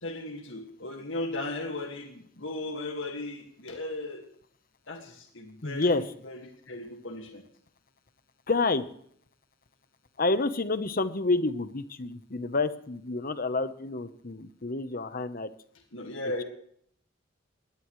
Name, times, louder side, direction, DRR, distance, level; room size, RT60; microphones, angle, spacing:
voice 1, 0.0-4.2 4.9-6.4 6.7-7.4 15.9-16.4, left 2 dB, 75° left, 3 dB, 1.9 m, -36 dB
voice 2, 5.6-6.0 8.5-8.9 10.2-15.5, left 3 dB, 45° left, 12 dB, 1.0 m, -28 dB
20.5 x 18.0 x 3.2 m, 0.63 s
head